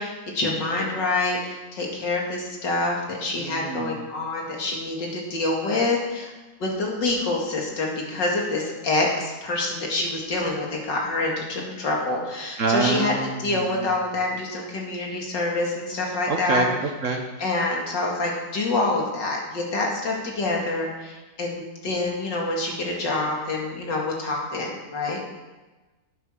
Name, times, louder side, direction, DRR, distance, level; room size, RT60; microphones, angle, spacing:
voice 1, 0.0-6.3 6.6-13.1 13.4-16.7 17.1-25.2, left 2 dB, 75° left, -1 dB, 2.9 m, -26 dB
voice 2, 3.4-4.0 12.6-13.7 16.3-17.2, right 4 dB, 50° right, 4 dB, 1.2 m, -26 dB
9.4 x 9.0 x 6.4 m, 1.2 s
omnidirectional pair, 1.9 m